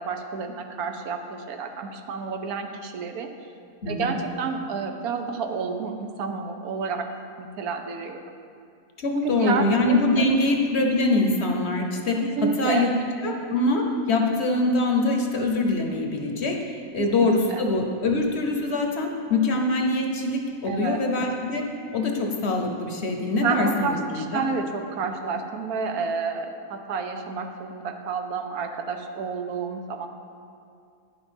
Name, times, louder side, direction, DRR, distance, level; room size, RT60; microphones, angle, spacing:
voice 1, 0.0-3.3 3.9-7.1 7.4-8.2 9.1-10.3 12.2-12.9 17.0-17.6 20.7-21.0 23.4-30.1, right 5 dB, 80° right, 6 dB, 1.2 m, -30 dB
voice 2, 3.8-4.2 9.0-12.2 12.6-12.9 13.2-16.6 16.9-21.6 21.9-24.4, left 2 dB, 55° left, 2 dB, 1.0 m, -24 dB
10.5 x 6.2 x 5.2 m, 2.4 s
omnidirectional pair, 1.6 m